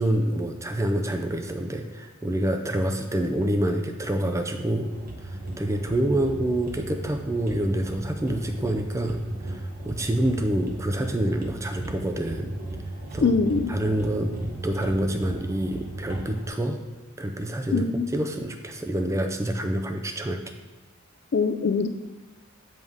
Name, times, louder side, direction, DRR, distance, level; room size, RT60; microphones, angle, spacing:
voice 1, 0.0-4.9 5.2-12.5 13.1-13.3 13.7-14.3 14.6-16.8 17.2-17.9 18.1-20.4, right 1 dB, 15° right, 5 dB, 0.4 m, -27 dB
sound 1, 4.8-16.5, right 1 dB, 40° right, 1.0 m, -36 dB
voice 2, 13.2-13.7 17.7-18.1 21.3-21.9, left 4 dB, 50° left, 9 dB, 0.4 m, -22 dB
7.6 x 5.3 x 3.6 m, 1.2 s
head